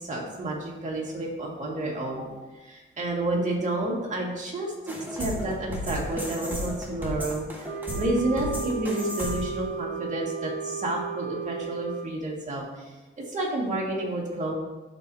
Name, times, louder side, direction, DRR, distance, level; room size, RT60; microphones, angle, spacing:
voice 1, 0.0-2.3 2.5-7.7 8.0-12.9 13.3-14.5, right 1 dB, 35° right, -3 dB, 2.0 m, -30 dB
sound 1, 4.9-9.6, equal, 10° right, 1.6 m, -34 dB
Wind instrument woodwind instrument, 7.6-12.1, right 6 dB, 80° right, 0.8 m, -34 dB
11.5 x 4.3 x 2.8 m, 1.2 s
cardioid pair, 90°, 21 cm